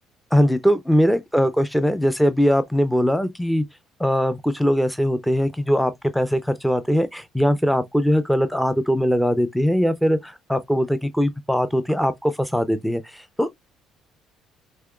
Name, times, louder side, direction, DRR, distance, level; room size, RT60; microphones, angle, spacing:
voice 1, 0.3-3.6 4.0-13.5, equal, 5° left, 0.6 m, -21 dB
5.6 x 2.9 x 2.3 m
hypercardioid pair, 60°, 0 cm